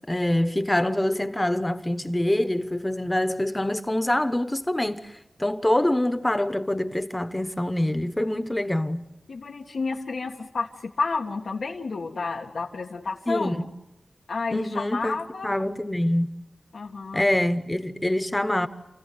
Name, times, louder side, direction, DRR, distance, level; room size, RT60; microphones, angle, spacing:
voice 1, 0.1-9.1 13.3-13.6 14.5-15.2 15.4-16.4 17.1-18.7, left 1 dB, 15° left, 1.0 m, -25 dB
voice 2, 9.3-13.6 14.3-15.5 16.7-17.2, left 4 dB, 90° left, 1.8 m, -30 dB
29.0 x 15.0 x 9.5 m
wide cardioid pair, 105°, 0 cm